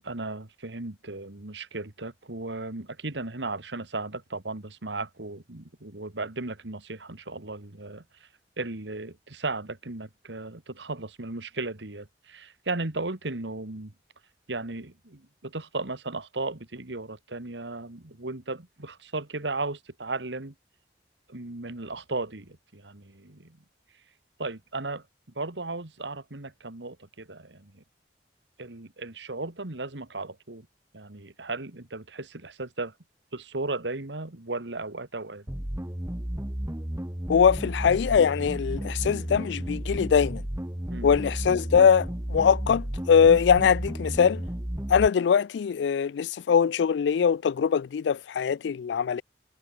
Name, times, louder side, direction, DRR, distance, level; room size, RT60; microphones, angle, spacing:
voice 1, 0.0-8.3 8.6-13.9 14.5-20.5 21.3-23.6 24.4-25.0 25.4-27.8 28.6-30.7 30.9-32.9 33.3-35.5 40.9-41.2, right 3 dB, 75° right, 2.0 m, -35 dB
sound 1, 35.5-45.1, equal, 15° right, 1.1 m, -33 dB
voice 2, 37.3-40.4 41.0-44.4 44.9-49.2, left 7 dB, 70° left, 0.3 m, -22 dB
head